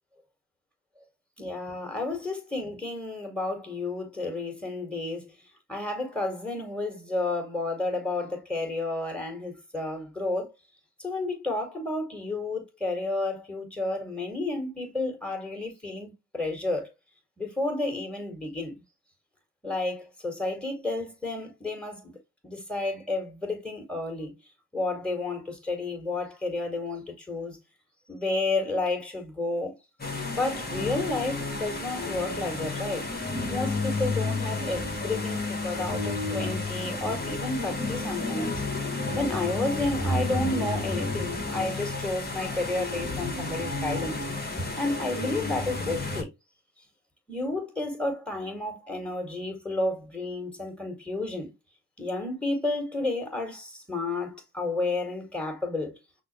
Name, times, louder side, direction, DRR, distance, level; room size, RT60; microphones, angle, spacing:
voice 1, 1.4-5.3 5.7-10.5 11.0-16.9 17.4-18.8 19.6-22.2 22.4-24.3 24.7-27.6 28.1-29.7 30.3-33.1 33.5-38.6 39.1-44.2 44.5-46.3 47.3-51.5 52.0-56.0, left 2 dB, 5° left, 2.0 m, -31 dB
sound 1, 30.0-46.2, left 2 dB, 20° left, 1.4 m, -31 dB
5.9 x 2.2 x 3.2 m
hypercardioid pair, 40°, 43 cm